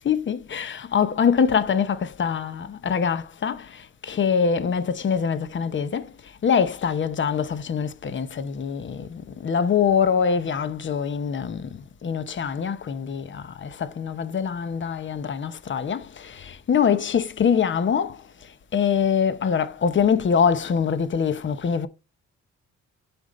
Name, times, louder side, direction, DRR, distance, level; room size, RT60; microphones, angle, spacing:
voice 1, 0.0-6.1 6.4-18.2 18.7-21.9, left 7 dB, 40° left, 0.9 m, -24 dB
7.8 x 5.3 x 3.1 m
cardioid pair, 90°, 30 cm